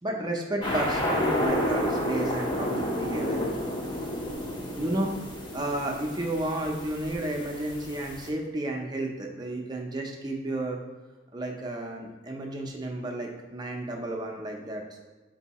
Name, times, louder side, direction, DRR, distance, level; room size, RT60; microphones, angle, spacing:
voice 1, 0.0-3.5 4.8-5.1 5.5-10.8 11.3-15.0, right 1 dB, 20° right, 0 dB, 0.6 m, -32 dB
sound 1, 0.6-8.3, left 1 dB, 25° left, 0.7 m, -30 dB
4.5 x 2.7 x 4.1 m, 1.3 s
head